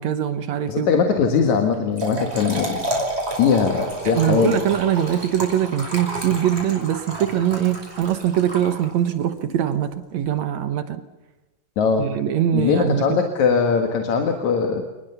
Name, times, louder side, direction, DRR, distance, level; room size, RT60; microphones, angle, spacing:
voice 1, 0.0-0.9 4.1-11.0 12.0-13.2, right 10 dB, 65° right, 11 dB, 2.1 m, -22 dB
voice 2, 0.7-2.8 3.3-4.6 11.8-12.1 12.5-14.8, left 6 dB, 60° left, 5 dB, 2.9 m, -20 dB
Trickle dribble / Fill (with liquid), 1.7-9.2, right 1 dB, 15° right, 5.6 m, -30 dB
28.0 x 20.5 x 7.0 m, 1.1 s
omnidirectional pair, 3.9 m